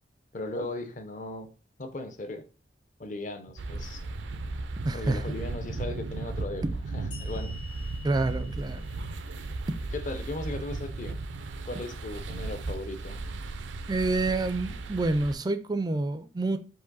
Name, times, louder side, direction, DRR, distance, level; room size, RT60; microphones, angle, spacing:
voice 1, 0.3-1.5 1.8-2.4 3.0-4.0 4.9-6.6 6.9-7.6 9.4-9.5 9.9-11.2 11.6-13.2, left 2 dB, 45° left, 0.6 m, -37 dB
sound 1, 3.6-15.4, right 3 dB, 80° right, 0.5 m, -36 dB
voice 2, 4.8-5.3 8.0-8.9 13.9-16.6, right 2 dB, 20° right, 0.3 m, -28 dB
sound 2, 7.1-10.5, left 4 dB, 90° left, 1.8 m, -50 dB
4.8 x 2.6 x 4.0 m
head